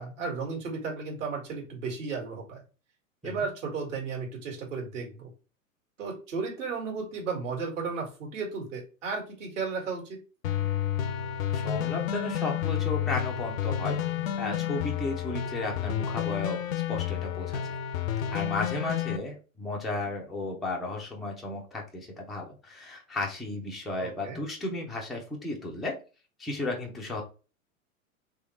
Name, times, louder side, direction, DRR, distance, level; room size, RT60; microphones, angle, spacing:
voice 1, 0.0-2.6 3.2-5.3 6.0-10.2 24.0-24.4, right 4 dB, 65° right, 0 dB, 1.8 m, -34 dB
sound 1, 10.4-19.2, left 10 dB, 75° left, 0.6 m, -30 dB
voice 2, 11.5-14.0 14.4-16.6 16.9-17.8 18.3-26.0 26.4-27.2, left 2 dB, ahead, -2 dB, 0.3 m, -34 dB
3.6 x 3.1 x 3.0 m, 0.33 s
figure-of-eight pair, 100°, 41 cm